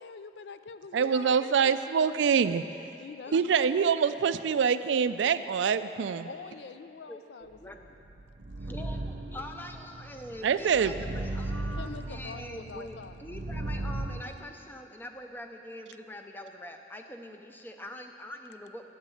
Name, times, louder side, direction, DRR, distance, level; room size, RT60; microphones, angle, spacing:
voice 1, 0.0-1.8 3.0-3.9 6.2-7.9 11.8-13.2, left 5 dB, 70° left, 11 dB, 0.4 m, -45 dB
voice 2, 0.9-2.6 3.3-6.3 10.4-10.9, right 6 dB, 90° right, 13 dB, 0.4 m, -25 dB
voice 3, 7.1-8.1 8.7-18.9, left 1 dB, 10° left, 5 dB, 0.5 m, -44 dB
sound 1, 7.8-14.2, right 2 dB, 70° right, 0.7 m, -37 dB
8.9 x 8.0 x 7.0 m, 2.8 s
head